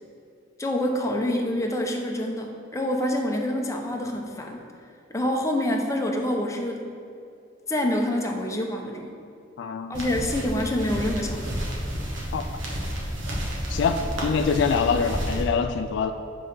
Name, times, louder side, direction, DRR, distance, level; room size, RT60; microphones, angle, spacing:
voice 1, 0.6-4.6 5.1-6.8 7.7-9.1 9.9-11.5, left 1 dB, 15° left, 1 dB, 0.7 m, -26 dB
voice 2, 9.6-10.1 12.3-12.5 13.7-16.1, left 5 dB, 65° left, 8 dB, 0.3 m, -24 dB
sound 1, 9.9-15.4, equal, 85° right, 1.4 m, -31 dB
7.9 x 3.8 x 5.4 m, 2.5 s
head